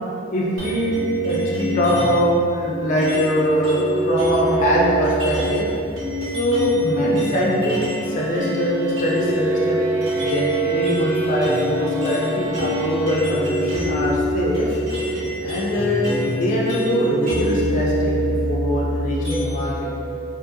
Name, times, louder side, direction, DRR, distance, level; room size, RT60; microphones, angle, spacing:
voice 1, 0.3-5.7 6.2-9.8 10.2-14.8 15.4-19.9, equal, 35° left, -5 dB, 0.3 m, -22 dB
sound 1, 0.6-2.3 3.0-8.1 8.4-19.8, right 1 dB, 65° right, 0.9 m, -24 dB
sound 2, 7.9-13.6, right 2 dB, 20° right, 1.0 m, -34 dB
2.7 x 2.5 x 2.6 m, 2.7 s
head